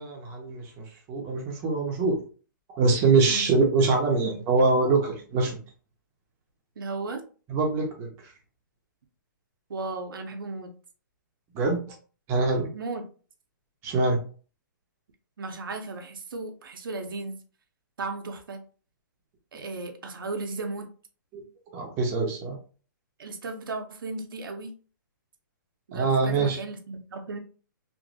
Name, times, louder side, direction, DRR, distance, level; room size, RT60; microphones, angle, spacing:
voice 1, 0.0-2.2 2.7-5.6 7.5-8.1 11.5-11.8 12.3-12.7 13.8-14.2 21.3-21.4 21.7-22.6 25.9-26.6, right 3 dB, 20° right, 1 dB, 0.7 m, -24 dB
voice 2, 6.8-7.2 9.7-10.7 12.7-13.1 15.4-17.4 18.0-18.6 19.5-20.9 23.2-24.7 25.9-27.4, right 3 dB, 90° right, 5 dB, 0.6 m, -35 dB
3.0 x 2.6 x 2.6 m, 0.38 s
hypercardioid pair, 160°, 11 cm